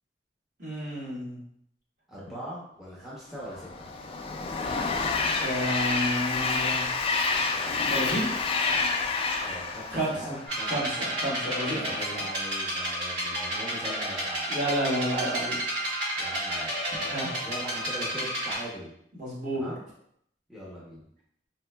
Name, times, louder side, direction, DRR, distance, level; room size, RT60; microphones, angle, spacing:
voice 1, 0.6-1.4 5.4-6.9 7.8-8.3 9.9-10.4 10.6-11.8 14.5-15.6 17.1-17.3 19.1-19.6, equal, 50° right, -7 dB, 1.5 m, -30 dB
voice 2, 2.1-3.9 9.4-10.8 11.6-14.5 16.2-18.9 19.5-19.8 20.5-21.0, equal, ahead, -9 dB, 0.7 m, -40 dB
Train, 3.4-10.9, left 4 dB, 35° left, 0.3 m, -28 dB
sound 1, 10.5-18.5, right 1 dB, 90° right, 1.3 m, -31 dB
4.2 x 2.7 x 2.2 m, 0.72 s
head